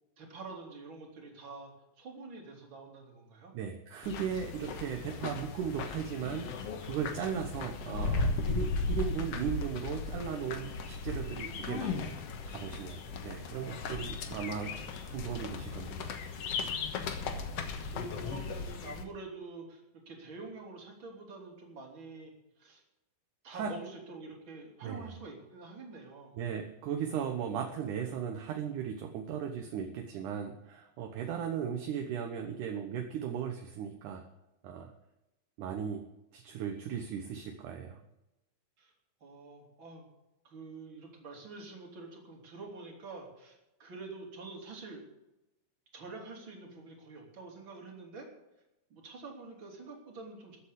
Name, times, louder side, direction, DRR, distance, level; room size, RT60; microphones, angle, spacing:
voice 1, 0.2-1.7 2.0-3.5 14.1-14.3 17.2-22.8 23.4-26.3 38.8-38.9 39.2-40.1 40.4-45.0 45.9-48.3 48.9-50.6, right 3 dB, 35° right, 0 dB, 3.6 m, -47 dB
voice 2, 3.5-6.5 6.8-12.2 12.5-14.8 15.1-16.1 23.5-23.7 24.8-25.1 26.4-34.3 34.6-34.9 35.6-36.0 36.3-38.0, right 8 dB, 70° right, 5 dB, 2.3 m, -37 dB
sound 1, 4.0-19.0, left 4 dB, 60° left, 1.8 m, -36 dB
14.0 x 8.4 x 8.3 m, 0.91 s
omnidirectional pair, 4.2 m